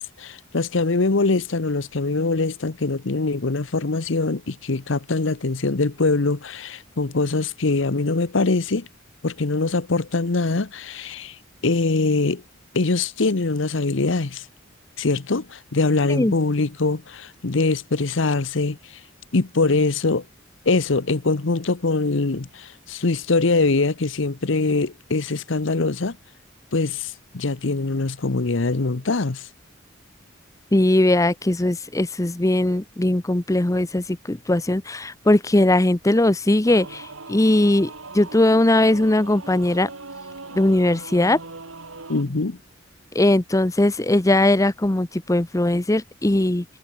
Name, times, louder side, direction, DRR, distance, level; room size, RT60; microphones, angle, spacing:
voice 1, 0.2-8.9 9.2-11.4 11.6-12.4 12.7-14.4 15.0-18.8 19.3-20.2 20.7-26.2 26.7-29.5 42.1-42.6, left 3 dB, 65° left, 0.9 m, -23 dB
voice 2, 30.7-37.9 38.1-39.9 40.5-41.4 43.1-46.6, left 1 dB, 15° left, 0.7 m, -19 dB
Singing / Musical instrument, 36.6-42.2, right 3 dB, 80° right, 2.9 m, -39 dB
head